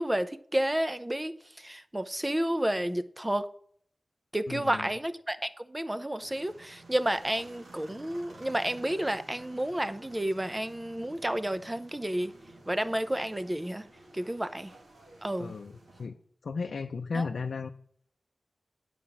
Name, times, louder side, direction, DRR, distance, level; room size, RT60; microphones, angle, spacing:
voice 1, 0.0-3.5 4.3-12.3 12.7-13.9 14.1-14.7 15.2-15.5 17.1-17.2, right 1 dB, 15° right, 0.7 m, -31 dB
voice 2, 4.5-4.9 15.4-16.2 16.4-17.7, left 4 dB, 80° left, 0.5 m, -35 dB
sound 1, 6.2-16.1, right 2 dB, 85° right, 2.2 m, -53 dB
9.4 x 5.0 x 7.0 m
cardioid pair, 60°, 0 cm